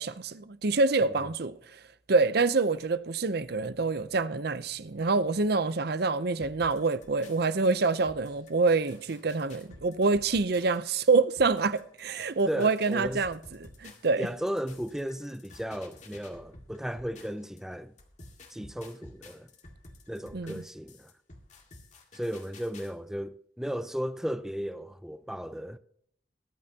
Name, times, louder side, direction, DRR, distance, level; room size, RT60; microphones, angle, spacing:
voice 1, 0.0-1.6 2.1-14.3 20.3-20.6, right 3 dB, 60° right, 0.7 m, -26 dB
sound 1, 6.4-17.6 18.0-22.9, left 2 dB, 40° left, 2.0 m, -52 dB
voice 2, 12.5-13.3 14.2-17.9 18.5-19.5 20.1-21.1 22.1-25.8, equal, 5° right, 0.4 m, -35 dB
22.5 x 8.8 x 2.9 m
head